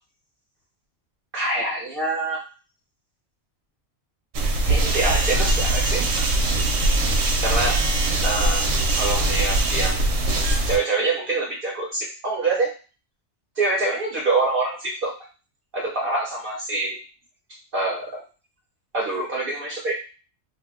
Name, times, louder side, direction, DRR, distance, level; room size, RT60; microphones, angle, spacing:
voice 1, 1.3-2.4 4.7-6.0 7.4-7.8 8.2-8.7 8.9-10.0 10.7-12.7 13.6-15.1 15.7-17.0 17.7-18.2 18.9-20.0, right 2 dB, 55° right, -3 dB, 0.8 m, -25 dB
sound 1, 4.3-10.8, right 2 dB, 85° right, 0.9 m, -21 dB
2.5 x 2.1 x 3.5 m, 0.34 s
omnidirectional pair, 1.2 m